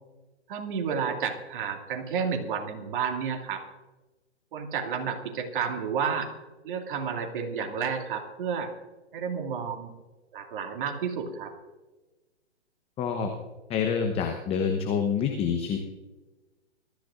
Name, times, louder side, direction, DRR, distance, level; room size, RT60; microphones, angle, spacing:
voice 1, 0.5-3.6 4.5-6.3 6.6-8.7 9.1-9.9 10.3-11.5, right 6 dB, 45° right, 3 dB, 2.4 m, -31 dB
voice 2, 13.0-13.3 13.7-15.8, left 6 dB, 15° left, 5 dB, 0.9 m, -27 dB
22.0 x 14.0 x 2.5 m, 1.2 s
hypercardioid pair, 125°, 34 cm